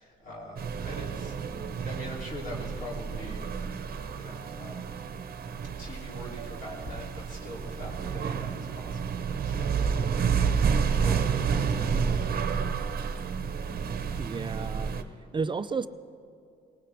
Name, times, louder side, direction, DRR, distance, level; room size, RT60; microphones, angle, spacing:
voice 1, 0.0-1.4 1.8-3.4 4.1-4.9 5.8-9.9 11.0-12.3, left 1 dB, 45° left, -4 dB, 3.0 m, -43 dB
sound 1, 0.6-15.0, right 6 dB, 50° right, 0.9 m, -30 dB
voice 2, 14.2-14.9 15.3-15.9, right 5 dB, 25° right, 13 dB, 0.5 m, -32 dB
18.5 x 18.5 x 3.4 m, 2.5 s
cardioid pair, 90°, 20 cm